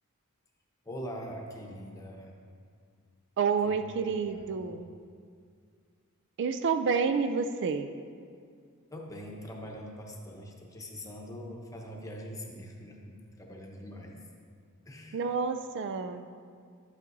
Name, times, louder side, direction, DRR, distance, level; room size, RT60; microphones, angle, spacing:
voice 1, 0.8-2.3 3.6-4.6 8.9-14.3 14.9-15.2, equal, 15° left, 0 dB, 0.9 m, -43 dB
voice 2, 3.4-4.9 6.4-7.9 15.1-16.3, right 5 dB, 55° right, 9 dB, 0.4 m, -29 dB
12.0 x 9.2 x 2.6 m, 2.2 s
head